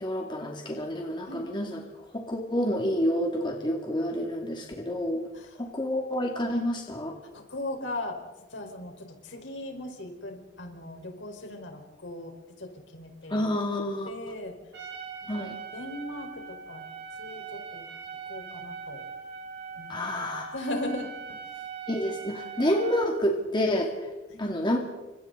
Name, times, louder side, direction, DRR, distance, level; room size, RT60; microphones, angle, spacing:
voice 1, 0.0-1.8 2.1-5.3 5.6-7.2 13.3-14.1 15.3-15.6 19.9-20.6 21.9-24.1 24.4-24.8, equal, 25° left, 1 dB, 2.4 m, -28 dB
voice 2, 7.3-8.2 8.5-13.4 14.1-14.5 15.3-16.8 17.2-17.9 18.3-19.0 19.7-21.4 24.3-24.4, left 1 dB, 65° left, 3 dB, 4.7 m, -38 dB
Trumpet, 14.7-23.2, right 6 dB, 60° right, 5.4 m, -41 dB
30.0 x 26.5 x 4.0 m, 1.1 s
head